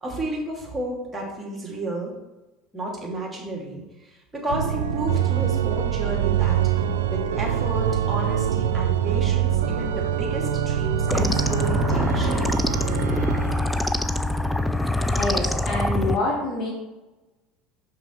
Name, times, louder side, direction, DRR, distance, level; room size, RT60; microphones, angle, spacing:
voice 1, 0.0-2.1 2.7-6.6 7.1-12.4, right 1 dB, 15° right, -2 dB, 2.6 m, -32 dB
Organ, 4.5-13.7, right 9 dB, 70° right, 0.4 m, -24 dB
sound 1, 11.1-16.2, left 1 dB, 5° left, 0.5 m, -24 dB
voice 2, 15.1-16.7, left 2 dB, 45° left, -3 dB, 1.6 m, -26 dB
5.9 x 5.8 x 4.6 m, 1.0 s
figure-of-eight pair, 70°, 0 cm